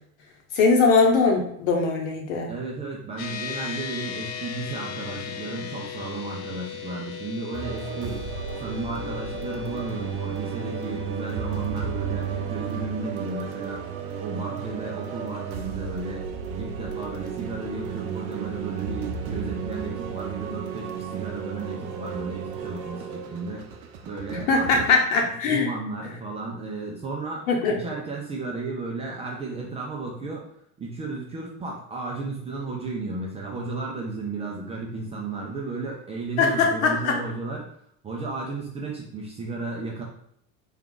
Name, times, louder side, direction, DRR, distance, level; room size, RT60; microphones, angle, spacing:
voice 1, 0.5-2.5 24.3-25.7 27.5-27.7 36.4-37.2, left 4 dB, 75° left, 2 dB, 1.1 m, -21 dB
voice 2, 2.5-8.2 8.6-13.8 14.2-16.2 16.6-23.7 24.0-24.9 25.5-30.5 30.8-37.7 38.0-40.0, right 3 dB, 15° right, -2 dB, 0.3 m, -34 dB
sound 1, 3.2-16.8, left 8 dB, 90° left, 0.7 m, -39 dB
sound 2, 7.5-24.8, right 7 dB, 75° right, 0.7 m, -33 dB
3.5 x 2.4 x 3.7 m, 0.68 s
supercardioid pair, 115°, 42 cm